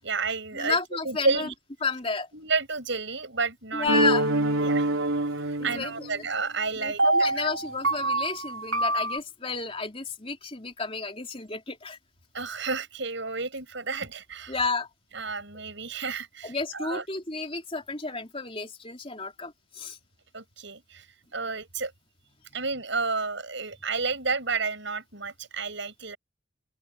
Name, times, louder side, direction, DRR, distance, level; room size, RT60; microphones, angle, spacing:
voice 1, 0.0-0.8 1.0-1.5 2.3-3.9 4.6-4.9 5.5-7.0 12.3-14.6 15.1-17.0 20.3-21.1 21.3-21.9 22.5-26.2, right 4 dB, 60° right, 7.9 m, -31 dB
voice 2, 0.5-1.5 1.8-2.3 3.7-4.3 5.6-6.3 6.8-12.0 14.5-14.9 16.4-20.0, left 4 dB, 25° left, 3.6 m, -31 dB
sound 1, 3.9-6.2 7.0-9.2, right 2 dB, 80° right, 3.9 m, -25 dB
open air
head